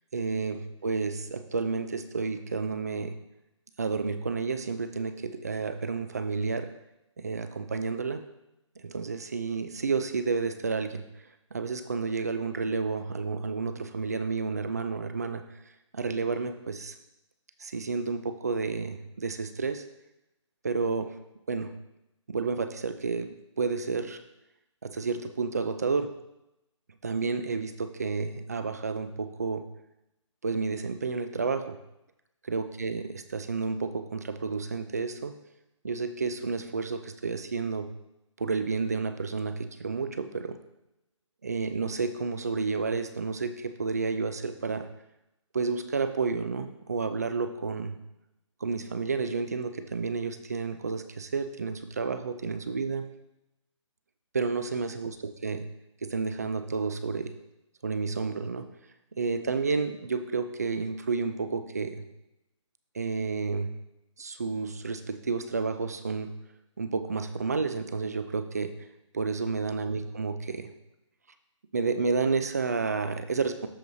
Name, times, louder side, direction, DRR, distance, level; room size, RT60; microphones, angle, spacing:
voice 1, 0.1-3.2 3.8-6.7 7.2-8.2 8.8-11.0 11.5-15.4 15.9-16.9 17.6-19.8 20.6-21.2 21.5-21.7 22.3-24.2 24.8-26.1 27.0-29.7 30.4-31.8 32.4-35.3 35.8-37.9 38.4-40.6 41.4-44.9 45.5-48.0 48.6-53.1 54.3-55.6 56.0-57.4 57.8-58.7 59.2-62.0 62.9-63.7 64.2-66.3 66.8-68.7 69.1-70.7 71.7-73.7, right 4 dB, 30° right, 9 dB, 0.4 m, -31 dB
13.0 x 4.7 x 2.6 m, 0.89 s
hypercardioid pair, 175°, 17 cm